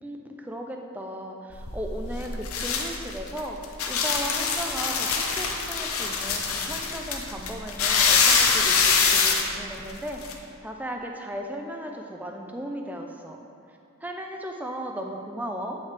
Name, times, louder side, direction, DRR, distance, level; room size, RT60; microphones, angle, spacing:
voice 1, 0.0-13.4 14.0-15.8, right 1 dB, 5° right, 2 dB, 0.4 m, -36 dB
sound 1, 1.5-10.3, left 5 dB, 80° left, 0.7 m, -24 dB
8.3 x 5.6 x 3.3 m, 2.7 s
head